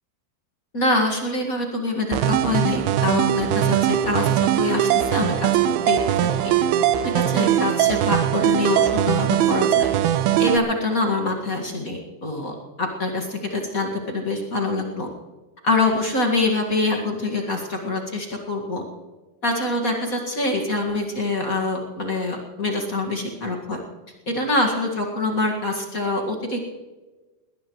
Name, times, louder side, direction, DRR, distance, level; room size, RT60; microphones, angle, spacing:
voice 1, 0.7-4.3 4.5-5.5 5.8-6.5 7.0-9.9 10.4-15.1 15.6-18.8 19.4-23.8 24.2-26.7, left 2 dB, 35° left, 1 dB, 1.4 m, -25 dB
sound 1, 2.1-10.6, right 11 dB, 80° right, 2.6 m, -20 dB
20.0 x 19.5 x 3.2 m, 1.2 s
omnidirectional pair, 4.4 m